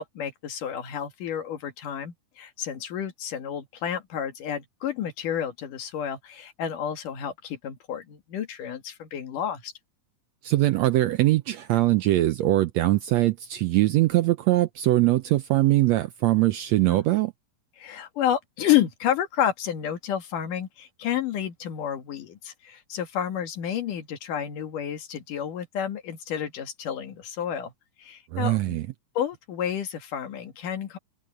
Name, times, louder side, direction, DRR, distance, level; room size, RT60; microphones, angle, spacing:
voice 1, 0.0-9.7 16.9-17.1 17.8-27.7 28.0-28.8 29.2-31.0, left 10 dB, 80° left, 3.5 m, -30 dB
voice 2, 10.4-17.3 28.3-28.9, right 16 dB, 75° right, 1.6 m, -22 dB
omnidirectional pair, 3.7 m